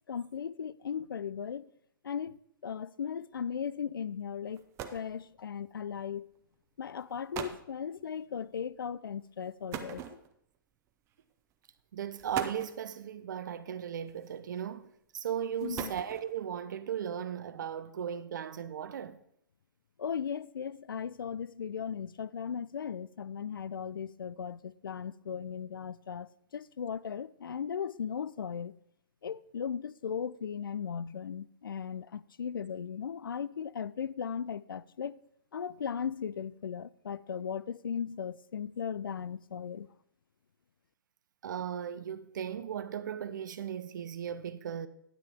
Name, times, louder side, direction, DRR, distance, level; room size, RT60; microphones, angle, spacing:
voice 1, 0.1-1.6 2.0-2.4 2.6-4.6 4.9-6.3 6.8-10.0 15.6-15.9 20.0-28.7 29.2-35.2 35.5-39.9, left 7 dB, 70° left, 0.4 m, -37 dB
sound 1, 4.2-4.3 4.5-5.2 6.1-6.4 7.0-7.1 7.3-7.7 9.7-10.6 11.5-11.6 12.1-12.8 14.1-14.6 15.4-16.4, right 9 dB, 25° right, 0.7 m, -41 dB
voice 2, 11.9-14.9 15.1-19.2 41.4-44.9, right 9 dB, 55° right, 0.6 m, -37 dB
9.8 x 9.0 x 3.5 m
figure-of-eight pair, 115°, 12 cm